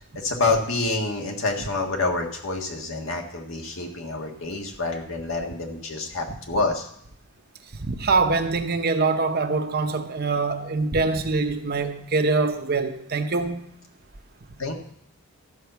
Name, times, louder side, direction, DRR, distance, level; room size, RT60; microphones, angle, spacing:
voice 1, 0.2-6.9 14.6-14.7, left 3 dB, 65° left, 1.8 m, -27 dB
voice 2, 7.8-13.6, right 3 dB, 45° right, 0.8 m, -24 dB
13.0 x 5.6 x 6.9 m
head